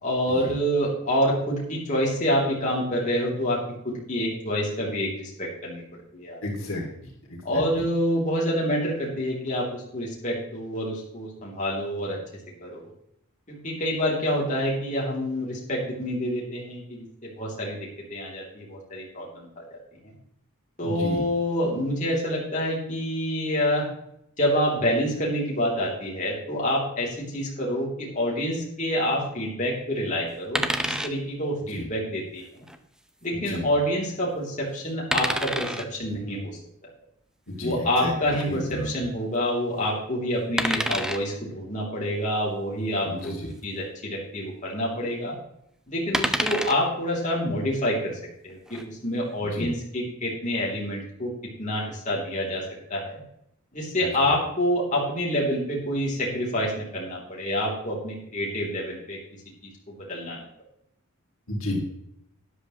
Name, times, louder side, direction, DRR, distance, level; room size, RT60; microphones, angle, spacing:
voice 1, 0.0-5.8 6.1-6.4 7.4-12.2 12.6-12.9 13.5-17.8 18.1-19.8 20.8-23.9 24.4-32.4 33.2-36.6 37.6-45.4 45.9-51.3 51.6-52.6 52.9-53.2 53.7-59.2 59.6-60.4, equal, 35° left, -4 dB, 3.1 m, -27 dB
voice 2, 6.4-6.8 7.3-7.6 20.8-21.2 31.8-31.9 33.3-33.6 37.5-38.1 38.5-38.9 43.0-43.5 49.5-49.7 54.0-54.1 61.5-61.8, left 1 dB, 65° left, -2 dB, 2.7 m, -32 dB
sound 1, 30.6-31.1 32.6-32.8 35.1-35.9 38.3-38.5 40.6-41.2 43.2-43.3 43.6-43.7 46.1-46.8 48.5-48.8, right 1 dB, 5° right, 0.6 m, -27 dB
12.5 x 10.5 x 3.1 m, 0.75 s
head